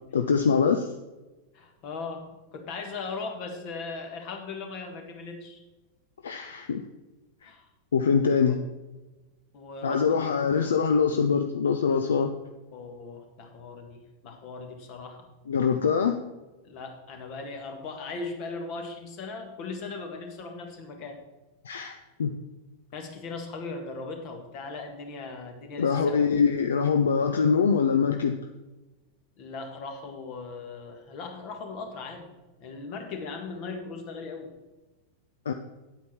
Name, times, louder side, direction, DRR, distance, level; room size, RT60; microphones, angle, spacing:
voice 1, 0.1-0.9 6.2-6.8 7.4-7.5 7.9-8.6 9.8-12.3 15.5-16.2 21.6-22.4 25.8-28.4 35.5-35.6, left 6 dB, 65° left, 6 dB, 0.6 m, -24 dB
voice 2, 1.5-5.6 7.4-7.7 8.5-8.6 9.5-10.3 12.7-15.3 16.6-21.2 21.7-22.0 22.9-26.3 29.4-32.3 32.6-34.5, left 3 dB, 40° left, 4 dB, 1.9 m, -38 dB
9.3 x 8.4 x 4.4 m, 1.1 s
figure-of-eight pair, 90°, 0 cm